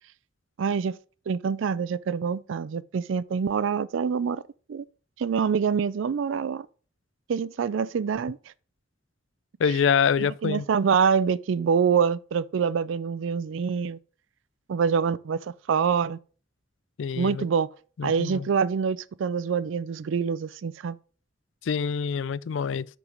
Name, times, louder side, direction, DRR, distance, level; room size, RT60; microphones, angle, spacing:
voice 1, 0.6-1.0 1.3-4.4 4.7-4.8 5.2-6.7 7.3-8.4 10.2-14.0 14.7-16.2 17.2-17.7 18.0-21.0, right 6 dB, 85° right, 0.4 m, -25 dB
voice 2, 9.6-10.6 17.0-17.5 18.0-18.5 21.6-22.9, left 6 dB, 80° left, 0.4 m, -25 dB
6.8 x 5.0 x 5.0 m
head